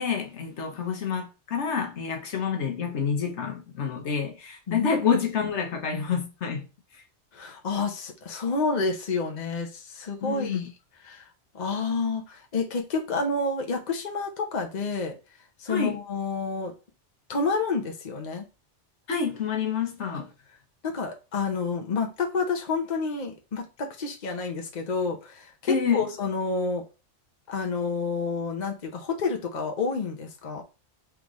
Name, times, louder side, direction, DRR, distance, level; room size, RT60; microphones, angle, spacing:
voice 1, 0.0-6.7 10.2-10.6 15.7-16.0 19.1-20.3 25.7-26.1, left 6 dB, 75° left, 1.2 m, -28 dB
voice 2, 7.3-10.6 11.1-11.3 11.5-15.1 15.6-16.7 17.3-18.5 20.8-26.8 27.5-30.6, left 4 dB, 40° left, 0.9 m, -29 dB
3.7 x 3.5 x 3.0 m
omnidirectional pair, 1.2 m